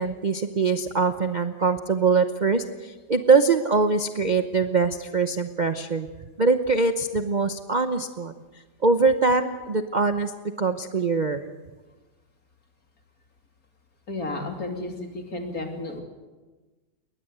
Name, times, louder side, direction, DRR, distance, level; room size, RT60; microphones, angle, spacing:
voice 1, 0.0-6.1 6.4-8.3 8.8-10.3 10.6-11.4, right 4 dB, 40° right, 8 dB, 0.7 m, -23 dB
voice 2, 14.1-16.0, left 2 dB, 55° left, 3 dB, 3.2 m, -32 dB
21.5 x 19.5 x 8.0 m, 1.2 s
omnidirectional pair, 1.8 m